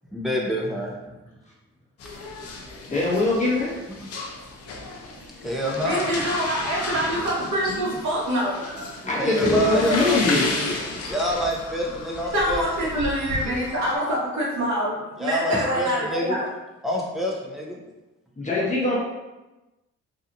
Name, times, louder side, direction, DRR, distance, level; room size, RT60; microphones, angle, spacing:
voice 1, 0.1-1.2 3.1-3.6 4.0-4.1 5.4-6.1 9.0-10.8 11.1-12.6 15.2-16.4 16.8-17.8, equal, ahead, -3 dB, 0.6 m, -27 dB
sound 1, 2.0-13.9, left 3 dB, 50° left, 0.6 m, -33 dB
voice 2, 2.9-3.8 9.0-10.4 18.4-19.0, left 2 dB, 25° left, -5 dB, 0.9 m, -22 dB
voice 3, 5.8-9.1 12.3-16.4, equal, 65° right, -6 dB, 0.9 m, -25 dB
2.8 x 2.4 x 2.6 m, 1.1 s
cardioid pair, 90°, 30 cm